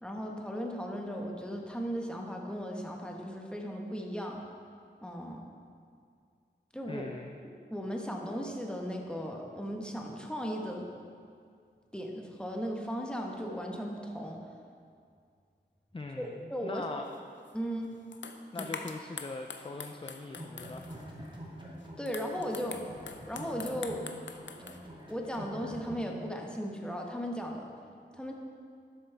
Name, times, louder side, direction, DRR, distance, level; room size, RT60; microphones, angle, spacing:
voice 1, 0.0-4.4 5.0-5.5 6.7-7.1 7.4-10.8 11.9-14.4 16.2-16.9 17.5-17.9 18.6-18.7 22.0-22.8 23.3-24.0 25.1-27.6 28.1-28.3, equal, 5° left, 0 dB, 1.3 m, -36 dB
voice 2, 6.9-7.4 15.9-17.1 18.5-20.9, left 3 dB, 30° left, 4 dB, 0.4 m, -41 dB
sound 1, 17.5-17.6 18.1-21.0 21.8-24.8, left 5 dB, 80° left, 0.5 m, -44 dB
sound 2, 20.3-22.1 22.3-26.1, equal, 25° right, 1.6 m, -46 dB
12.0 x 7.2 x 3.5 m, 2.3 s
wide cardioid pair, 45°, 19 cm